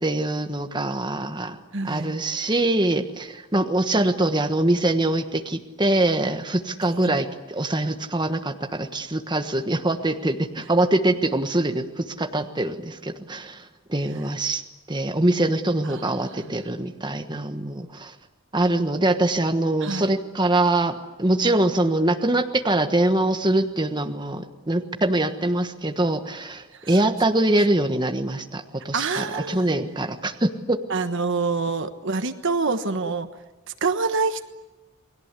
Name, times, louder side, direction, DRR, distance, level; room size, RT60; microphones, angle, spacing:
voice 1, 0.0-1.6 1.8-14.6 14.9-18.1 18.5-30.8, right 1 dB, 20° right, 6 dB, 1.3 m, -23 dB
voice 2, 1.7-2.1 15.9-16.1 16.4-16.5 19.8-20.1 26.8-26.9 28.9-29.6 30.9-33.3 33.7-34.5, right 4 dB, 55° right, 9 dB, 1.3 m, -26 dB
29.5 x 20.5 x 8.3 m, 1.1 s
head